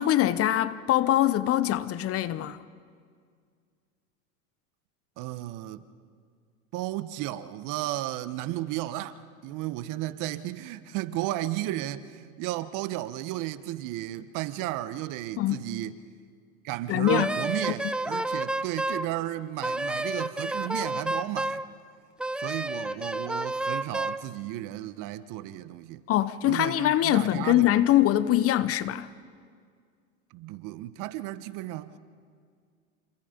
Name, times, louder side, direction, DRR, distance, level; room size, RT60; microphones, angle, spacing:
voice 1, 0.0-2.6 15.4-15.7 16.9-17.4 26.1-29.1, left 13 dB, 35° left, 0.9 m, -23 dB
voice 2, 5.2-5.8 6.7-15.9 16.6-21.7 22.4-26.0 26.4-27.9 30.3-31.9, right 14 dB, 50° right, 1.2 m, -34 dB
Wind instrument woodwind instrument, 17.1-19.1 19.6-21.7 22.2-24.2, right 1 dB, ahead, 0.6 m, -30 dB
29.0 x 26.5 x 5.3 m
hypercardioid pair, 100°, 42 cm